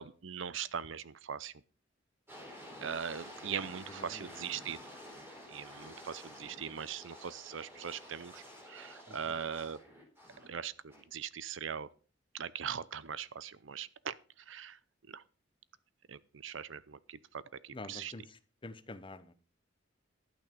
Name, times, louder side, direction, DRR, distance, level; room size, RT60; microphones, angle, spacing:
voice 1, 0.0-1.5 2.8-4.8 5.5-9.8 10.4-11.9 12.3-14.1 14.5-14.8 15.1-15.2 16.1-18.1, right 7 dB, 75° right, 0.6 m, -41 dB
sound 1, 2.3-10.5 10.9-11.0, equal, 10° right, 3.9 m, -51 dB
voice 2, 3.9-4.3 9.1-9.4 17.7-19.3, left 2 dB, 25° left, 0.9 m, -48 dB
11.5 x 9.1 x 5.2 m
head